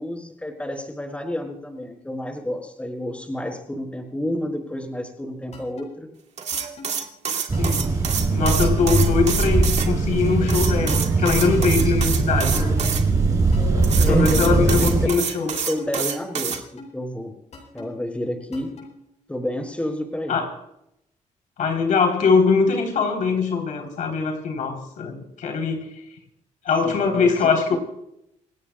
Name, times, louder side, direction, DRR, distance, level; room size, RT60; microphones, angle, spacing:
voice 1, 0.0-6.1 14.0-14.5 14.8-14.9 15.5-16.6 16.9-17.3 17.7-18.7 19.3-20.4 26.8-27.3 27.7-27.8, left 1 dB, 10° left, 4.5 m, -30 dB
sound 1, 5.5-5.9 6.5-6.9 7.5-7.9 8.5-8.9 9.5-9.9 10.5-10.9 11.5-11.9 12.5-12.9 13.5-13.9 14.5-14.9 15.5-15.9 16.5-16.9 17.5-17.9 18.5-18.9, left 3 dB, 60° left, 8.0 m, -40 dB
sound 2, 6.4-9.9 10.5-13.0 13.8-16.6, right 7 dB, 60° right, 2.1 m, -27 dB
sound 3, 7.5-15.1, right 3 dB, 25° right, 6.9 m, -20 dB
voice 2, 8.3-12.7 14.0-15.5 20.3-20.5 21.6-25.9 26.6-27.8, left 5 dB, 80° left, 3.3 m, -22 dB
28.0 x 17.0 x 2.2 m
cardioid pair, 110°, 13 cm